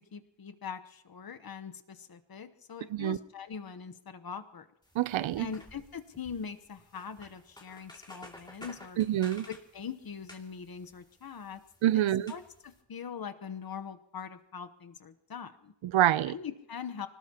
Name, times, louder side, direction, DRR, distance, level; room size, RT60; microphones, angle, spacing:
voice 1, 0.1-4.7 5.4-9.0 9.5-11.6 11.9-12.0 12.3-15.7 16.3-17.1, left 6 dB, 50° left, 1.0 m, -42 dB
sound 1, 4.8-12.8, left 1 dB, 10° left, 2.5 m, -54 dB
voice 2, 5.0-5.5 9.0-9.5 11.8-12.3 15.8-16.3, right 13 dB, 85° right, 0.6 m, -26 dB
25.0 x 19.0 x 2.9 m
cardioid pair, 80°, 46 cm